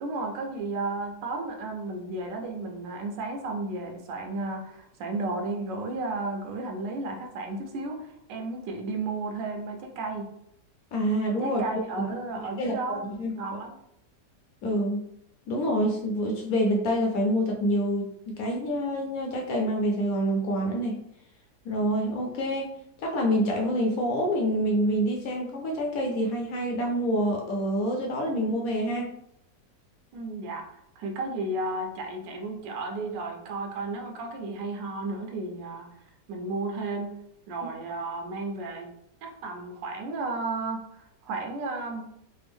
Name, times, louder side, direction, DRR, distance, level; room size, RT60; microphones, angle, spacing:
voice 1, 0.0-10.3 11.4-13.7 30.1-30.7 31.0-35.9 36.3-37.2 37.5-38.9 39.2-42.1, right 2 dB, 90° right, 2 dB, 1.3 m, -33 dB
voice 2, 10.9-12.1 12.6-13.3 14.6-15.0 15.5-21.0 21.6-22.7 23.0-29.1, equal, 70° left, 0 dB, 0.9 m, -27 dB
3.4 x 2.0 x 3.4 m, 0.76 s
omnidirectional pair, 1.9 m